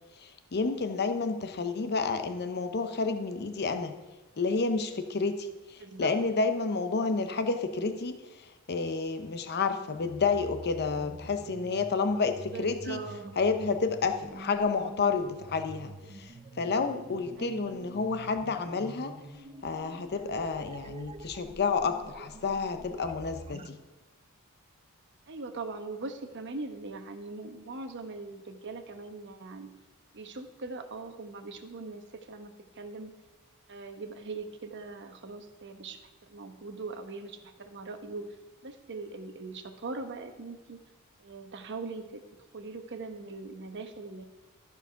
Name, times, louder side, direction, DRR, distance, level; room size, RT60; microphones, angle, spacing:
voice 1, 0.2-3.9 4.4-8.2 8.7-13.0 13.4-16.3 16.6-19.1 19.6-23.8, left 4 dB, 50° left, 8 dB, 0.7 m, -30 dB
voice 2, 5.8-6.1 12.5-13.3 17.4-17.8 25.3-29.7 30.1-33.1 33.7-38.3 38.6-40.8 41.2-42.2 42.5-44.2, right 3 dB, 55° right, 7 dB, 1.0 m, -41 dB
sound 1, 10.0-23.7, right 2 dB, 25° right, 0.5 m, -47 dB
13.5 x 4.8 x 5.7 m, 1.2 s
head